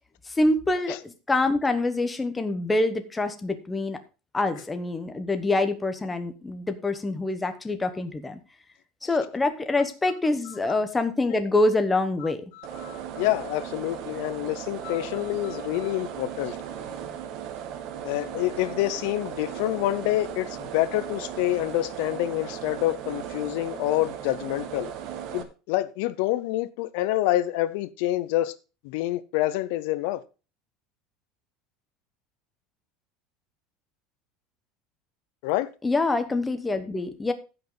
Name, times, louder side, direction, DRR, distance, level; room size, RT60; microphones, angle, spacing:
voice 1, 0.4-4.0 4.3-8.4 9.0-12.4 35.8-37.3, left 2 dB, 10° left, 1.0 m, -25 dB
voice 2, 10.5-10.8 12.2-16.6 18.0-24.9 25.3-28.6 28.8-30.2 35.4-35.7, left 16 dB, 65° left, 0.7 m, -27 dB
sound 1, 12.6-25.4, right 9 dB, 50° right, 1.5 m, -37 dB
15.5 x 5.9 x 3.9 m
cardioid pair, 170°, 0 cm